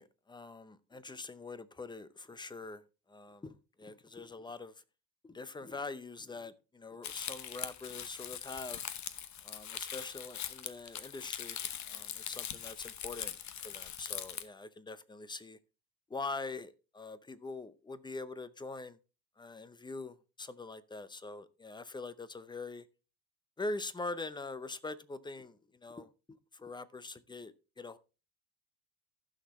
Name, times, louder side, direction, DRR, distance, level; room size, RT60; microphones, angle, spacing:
voice 1, 0.0-2.8 3.1-4.7 5.2-8.8 9.4-11.6 11.9-13.3 13.6-15.6 16.1-19.0 19.4-22.8 23.6-25.6 25.8-28.0, left 3 dB, 10° left, 0.6 m, -43 dB
Crumpling crinkling, 7.0-14.4, left 9 dB, 40° left, 0.9 m, -41 dB
14.5 x 6.3 x 3.1 m
cardioid pair, 115°, 46 cm